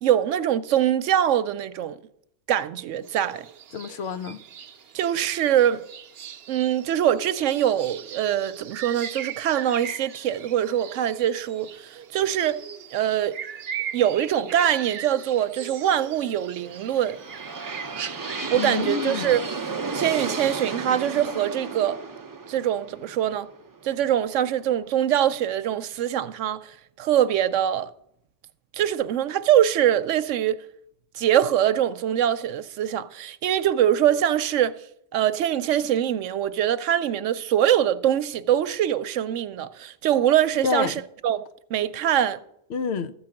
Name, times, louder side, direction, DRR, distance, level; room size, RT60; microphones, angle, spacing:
voice 1, 0.0-2.0 2.5-3.5 4.9-5.8 6.5-12.6 12.9-13.4 13.9-17.2 18.5-19.4 19.9-22.0 22.5-23.5 23.8-27.9 28.7-30.6 31.1-34.7 35.1-41.4 41.7-42.4, right 10 dB, 85° right, 1.0 m, -23 dB
sound 1, 3.0-18.8, right 8 dB, 60° right, 0.8 m, -39 dB
voice 2, 3.7-4.4 18.5-19.3 40.6-40.9 42.7-43.1, left 6 dB, 65° left, 0.8 m, -28 dB
sound 2, 16.6-24.5, right 4 dB, 25° right, 0.4 m, -33 dB
14.0 x 4.8 x 7.6 m
omnidirectional pair, 1.2 m